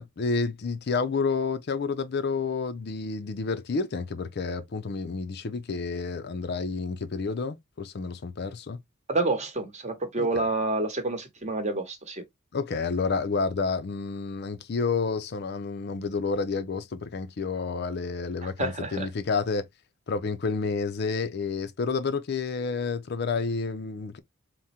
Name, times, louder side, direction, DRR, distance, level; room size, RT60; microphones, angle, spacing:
voice 1, 0.0-8.8 10.2-10.4 12.5-19.7 20.1-24.2, left 4 dB, 50° left, 0.5 m, -30 dB
voice 2, 9.1-12.2 18.4-19.1, right 2 dB, 35° right, 0.9 m, -28 dB
3.6 x 2.1 x 4.2 m
head